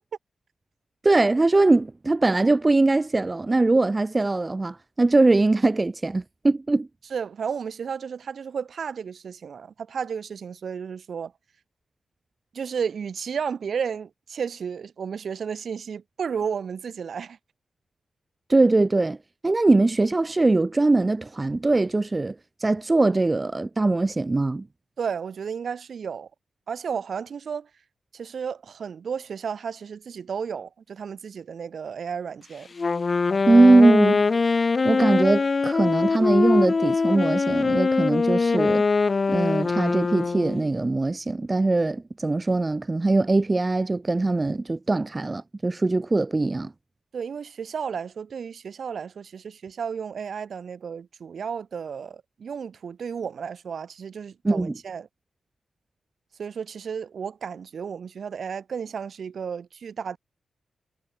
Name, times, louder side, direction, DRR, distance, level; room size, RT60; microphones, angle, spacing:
voice 1, 1.0-6.9 18.5-19.2 19.4-22.3 22.6-24.6 33.5-34.2 34.8-38.8 39.3-46.7 54.4-54.7, right 2 dB, 25° right, 1.3 m, -21 dB
voice 2, 7.1-11.3 12.5-17.4 25.0-26.3 26.7-27.7 28.1-32.7 47.1-55.1 56.4-60.2, right 6 dB, 65° right, 5.9 m, -33 dB
Wind instrument woodwind instrument, 32.8-40.6, left 4 dB, 40° left, 0.5 m, -22 dB
wide cardioid pair, 100°, 0 cm